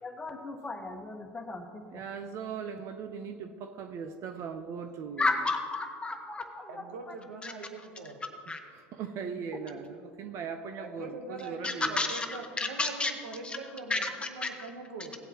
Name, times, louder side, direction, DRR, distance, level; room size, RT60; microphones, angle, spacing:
voice 1, 0.0-1.8 5.2-7.1 7.4-7.5 8.5-8.6 11.6-13.1 13.4-13.6 13.9-14.1 14.4-14.5, left 3 dB, 15° left, 4 dB, 1.3 m, -33 dB
voice 2, 1.9-5.3 8.7-12.1, right 6 dB, 50° right, 7 dB, 0.7 m, -39 dB
voice 3, 6.7-8.2 10.8-15.2, right 3 dB, 85° right, 4 dB, 1.1 m, -42 dB
17.0 x 8.0 x 3.0 m, 2.3 s
hypercardioid pair, 90°, 6 cm